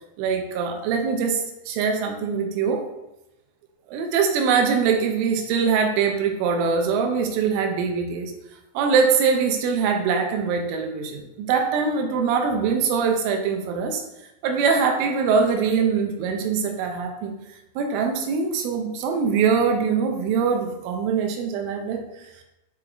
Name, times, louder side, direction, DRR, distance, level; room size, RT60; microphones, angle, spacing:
voice 1, 0.2-2.9 3.9-8.3 8.7-14.0 14.4-17.3 17.8-22.0, right 5 dB, 80° right, 4 dB, 3.1 m, -23 dB
8.5 x 3.3 x 3.5 m, 0.93 s
omnidirectional pair, 5.6 m